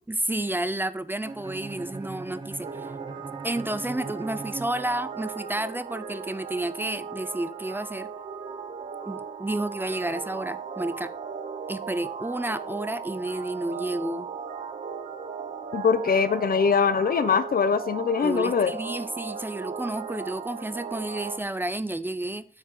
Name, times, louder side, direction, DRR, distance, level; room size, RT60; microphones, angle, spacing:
voice 1, 0.1-2.9 3.4-8.1 9.1-11.1 11.7-14.3 18.2-22.5, right 1 dB, 15° right, 0.6 m, -31 dB
Bowed string instrument, 1.2-5.4, right 3 dB, 30° right, 1.0 m, -40 dB
sound 1, 2.6-21.4, right 6 dB, 60° right, 1.0 m, -37 dB
voice 2, 15.7-18.7, left 6 dB, 80° left, 1.0 m, -22 dB
9.2 x 9.0 x 3.9 m
wide cardioid pair, 180°, 15 cm